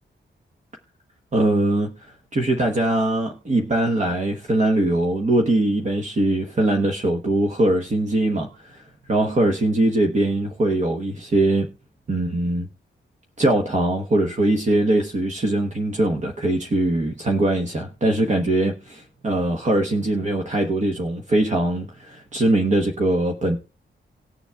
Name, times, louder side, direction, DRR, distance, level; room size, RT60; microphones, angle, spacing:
voice 1, 1.3-11.7 12.1-12.7 13.4-23.6, right 1 dB, 35° right, 1.1 m, -22 dB
19.5 x 7.0 x 2.3 m
wide cardioid pair, 150°, 20 cm